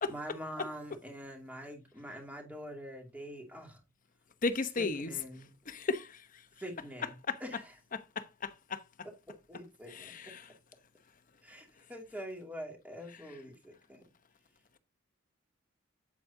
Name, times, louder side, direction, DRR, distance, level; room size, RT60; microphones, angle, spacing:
voice 1, 0.1-3.8 4.8-5.5 6.6-7.1 7.4-7.8 9.0-10.3 11.4-14.0, equal, 10° right, 2.5 m, -45 dB
voice 2, 4.4-5.1 5.7-6.2 7.3-7.4 7.9-8.8 9.9-10.4, left 3 dB, 40° left, 0.9 m, -34 dB
8.6 x 8.3 x 2.7 m
head